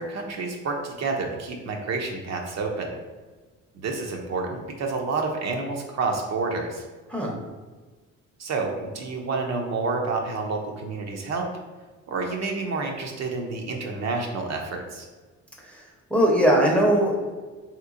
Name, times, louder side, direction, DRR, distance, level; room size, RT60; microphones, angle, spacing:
voice 1, 0.0-3.0 3.7-6.8 8.4-11.5 12.1-15.1, right 3 dB, 60° right, 2 dB, 0.6 m, -29 dB
voice 2, 16.1-17.3, equal, 5° left, -2 dB, 0.6 m, -20 dB
3.3 x 2.9 x 2.4 m, 1.3 s
cardioid pair, 90°, 30 cm